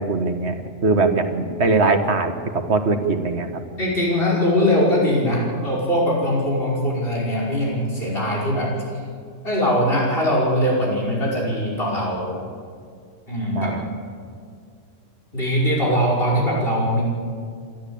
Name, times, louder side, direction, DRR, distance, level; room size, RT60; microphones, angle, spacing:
voice 1, 0.0-3.6 13.5-13.8, right 3 dB, 60° right, 7 dB, 1.8 m, -21 dB
voice 2, 3.8-8.7 9.4-12.4 13.3-13.7 15.3-17.0, equal, 45° left, -4 dB, 5.8 m, -21 dB
27.5 x 12.5 x 8.6 m, 2.1 s
omnidirectional pair, 1.3 m